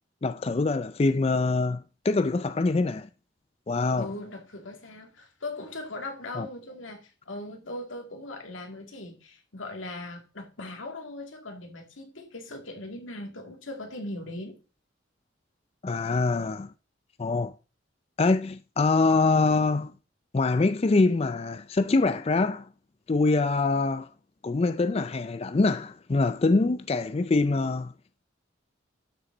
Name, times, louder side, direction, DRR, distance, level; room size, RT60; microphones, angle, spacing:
voice 1, 0.2-3.1 3.7-4.1 6.3-6.5 15.8-16.7 17.2-17.5 18.2-19.9 20.3-22.7 23.1-24.1 24.4-27.9, left 3 dB, 30° left, 0.4 m, -24 dB
voice 2, 4.0-14.6, left 2 dB, 90° left, 2.4 m, -39 dB
12.0 x 7.1 x 3.9 m
head